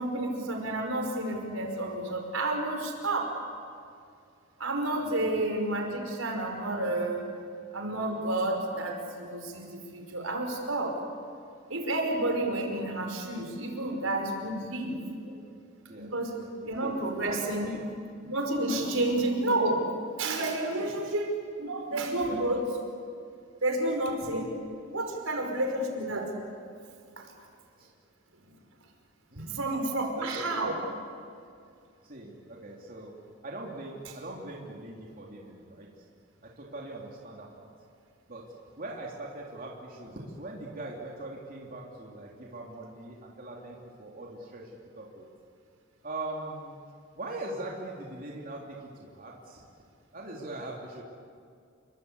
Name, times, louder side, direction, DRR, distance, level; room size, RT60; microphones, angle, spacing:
voice 1, 0.0-3.4 4.6-7.2 7.7-11.0 11.7-15.0 16.0-16.3 16.6-17.7 18.3-19.9 20.2-21.3 21.6-22.7 23.6-24.6 24.9-26.3 27.2-27.5 29.4-30.8, right 1 dB, 80° right, 3 dB, 5.2 m, -30 dB
voice 2, 5.0-5.3 15.2-15.3 15.9-16.1 16.4-16.5 16.8-16.9 17.3-17.4 17.7-17.8 18.7-19.0 20.8-20.9 22.2-22.4 27.8-27.9 29.3-30.8 32.0-33.1 33.4-35.9 36.6-37.7 38.3-38.4 38.8-45.3 46.0-46.8 47.2-49.6 50.1-51.0, right 2 dB, 40° right, -2 dB, 3.4 m, -41 dB
29.0 x 23.5 x 8.3 m, 2.4 s
head